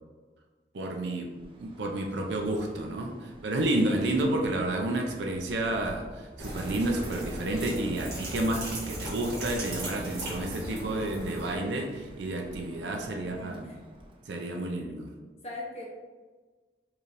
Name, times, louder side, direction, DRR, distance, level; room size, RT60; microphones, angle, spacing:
voice 1, 0.7-1.3 1.6-13.7 14.3-15.1, right 1 dB, 85° right, 2 dB, 0.5 m, -30 dB
Bird, 1.2-14.3, equal, 30° right, 0.4 m, -50 dB
sound 1, 6.4-11.6, right 1 dB, 70° right, 1.5 m, -37 dB
voice 2, 12.5-13.8 14.3-14.5 15.4-15.9, left 2 dB, 35° left, -3 dB, 0.7 m, -43 dB
4.5 x 3.3 x 2.5 m, 1.4 s
head